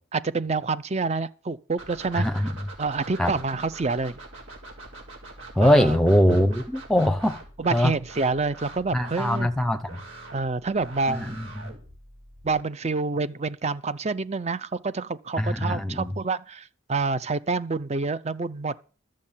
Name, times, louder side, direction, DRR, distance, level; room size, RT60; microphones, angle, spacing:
voice 1, 0.1-2.3 2.8-4.2 5.6-6.0 6.3-6.4 7.6-9.5 10.3-11.4 12.4-18.7, right 4 dB, 30° right, 0.5 m, -27 dB
sound 1, 1.8-12.6, right 2 dB, 80° right, 4.3 m, -44 dB
voice 2, 2.1-2.5 3.2-3.3 5.5-7.4 7.7-7.9 8.9-9.9 11.1-11.7 15.4-16.1, equal, ahead, 0.9 m, -22 dB
12.5 x 7.5 x 7.2 m
head